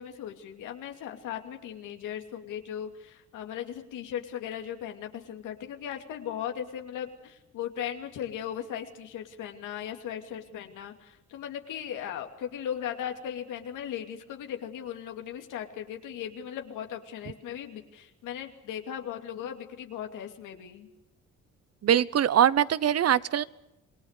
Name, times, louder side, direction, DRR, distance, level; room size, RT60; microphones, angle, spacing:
voice 1, 0.0-20.9, left 9 dB, 90° left, 4 dB, 2.7 m, -37 dB
voice 2, 21.8-23.4, right 10 dB, 55° right, 19 dB, 1.0 m, -22 dB
27.5 x 19.5 x 6.7 m, 0.93 s
cardioid pair, 90°, 30 cm